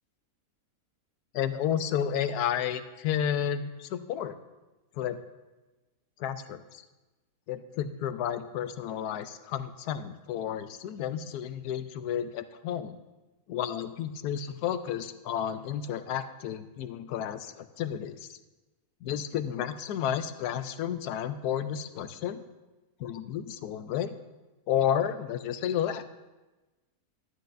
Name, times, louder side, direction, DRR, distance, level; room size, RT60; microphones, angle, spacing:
voice 1, 1.3-4.4 5.0-5.2 6.2-6.8 7.5-13.0 13.5-18.4 19.0-22.4 23.0-24.1 24.7-26.0, left 9 dB, 80° left, 11 dB, 1.1 m, -31 dB
12.5 x 9.5 x 2.6 m, 1.1 s
omnidirectional pair, 1.7 m